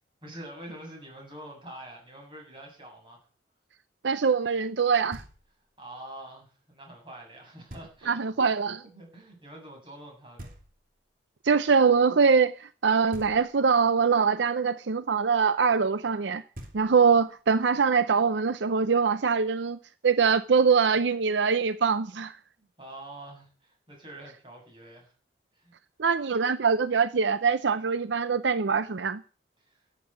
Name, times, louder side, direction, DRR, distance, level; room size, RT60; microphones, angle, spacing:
voice 1, 0.2-3.2 5.8-8.2 8.9-10.5 22.6-25.1 25.5-25.7 29.6-29.7, right 1 dB, 25° right, 7.6 m, -45 dB
voice 2, 4.0-5.2 8.1-8.8 11.4-16.4 16.7-19.8 20.0-22.4 26.0-29.2, right 5 dB, 75° right, 0.6 m, -23 dB
Knock, 5.1-5.8 7.7-8.3 10.4-11.2 13.1-13.9 16.2-16.3 16.5-17.3, equal, 50° right, 2.8 m, -47 dB
13.5 x 8.3 x 8.2 m
head